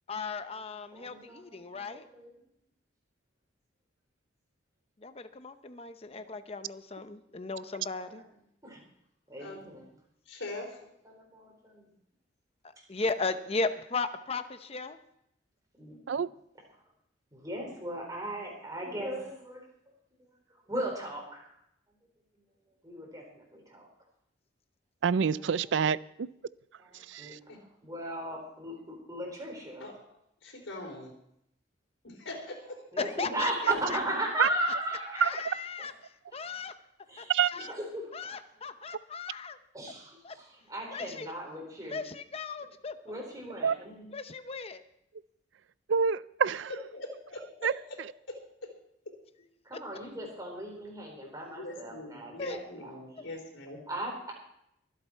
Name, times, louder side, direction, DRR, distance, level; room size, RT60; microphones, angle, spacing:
voice 1, 0.1-2.1 5.0-8.2 12.9-15.0 33.0-34.0 34.4-34.7 35.2-35.9 36.3-36.7 37.2-37.7 38.1-39.6 40.2-40.3 40.9-41.3 41.9-43.2 44.1-44.8 52.4-52.6, left 4 dB, 30° left, 10 dB, 0.7 m, -36 dB
voice 2, 0.9-2.3 6.1-6.3 8.0-8.2 8.6-8.8 9.3-9.9 11.0-11.8 15.8-16.0 17.3-19.6 20.7-21.5 22.8-23.9 25.3-25.5 26.8-29.9 32.9-35.4 35.8-35.9 36.3-36.4 37.1-38.4 39.7-42.0 43.0-44.1 49.6-52.9 53.9-54.3, right 1 dB, 20° right, 0 dB, 4.3 m, -37 dB
voice 3, 10.3-10.8 27.5-27.6 29.8-29.9 30.4-31.1 32.0-32.8 46.9-48.0 48.3-48.7 51.6-53.8, left 1 dB, 85° left, 1 dB, 3.8 m, -42 dB
voice 4, 25.0-26.3 27.1-27.4 34.4-34.5 35.2-35.3 37.3-37.5 43.6-43.8 45.9-46.7 47.6-47.7, right 6 dB, 70° right, 18 dB, 0.4 m, -26 dB
23.5 x 8.2 x 4.5 m, 0.76 s
head